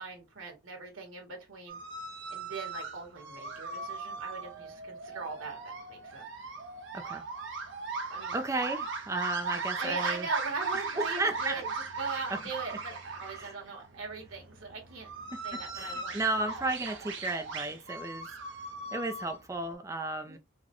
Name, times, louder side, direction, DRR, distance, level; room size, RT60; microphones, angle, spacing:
voice 1, 0.0-1.8 2.3-6.3 8.0-8.4 9.8-11.7 12.0-15.1 15.4-16.2 20.3-20.4, right 3 dB, 90° right, 1.5 m, -40 dB
sound 1, 1.7-19.7, right 4 dB, 65° right, 0.7 m, -38 dB
voice 2, 8.3-10.3 11.0-11.6 12.3-12.4 13.4-13.5 15.3-18.3 18.9-20.4, right 2 dB, 15° right, 0.4 m, -34 dB
4.0 x 2.1 x 3.0 m
head